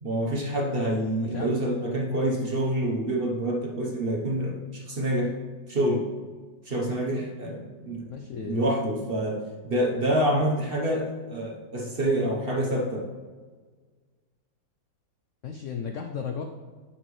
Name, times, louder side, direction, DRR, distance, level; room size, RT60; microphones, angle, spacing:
voice 1, 0.0-5.4 5.7-6.1 6.6-8.1 8.4-13.1, right 1 dB, 40° right, 0 dB, 0.9 m, -27 dB
voice 2, 1.2-1.8 8.0-8.7 15.4-16.4, left 6 dB, 85° left, 4 dB, 0.6 m, -35 dB
9.6 x 5.8 x 3.2 m, 1.5 s
omnidirectional pair, 2.0 m